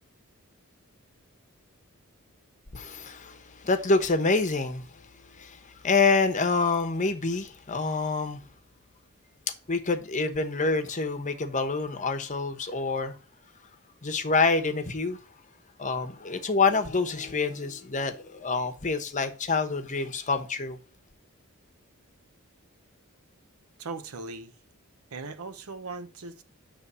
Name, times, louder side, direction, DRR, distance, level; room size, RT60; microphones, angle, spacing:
voice 1, 2.7-8.4 9.7-13.2 14.0-15.2 15.8-20.8, left 4 dB, 35° left, 1.0 m, -27 dB
voice 2, 23.8-24.5 25.1-26.4, right 3 dB, 80° right, 0.8 m, -38 dB
9.8 x 3.3 x 6.7 m
head